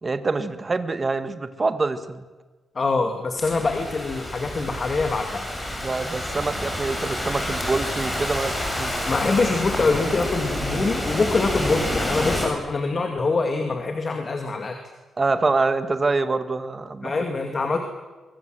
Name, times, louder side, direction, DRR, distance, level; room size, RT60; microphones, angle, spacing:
voice 1, 0.0-2.2 5.8-8.9 15.2-17.2, right 3 dB, 25° right, 10 dB, 1.7 m, -25 dB
voice 2, 2.7-5.5 9.1-14.8 17.0-17.8, left 3 dB, 35° left, 4 dB, 2.3 m, -24 dB
Thunderstorm / Rain, 3.4-12.4, left 1 dB, 10° left, 6.0 m, -28 dB
24.0 x 23.5 x 7.7 m, 1.3 s
wide cardioid pair, 150°, 0 cm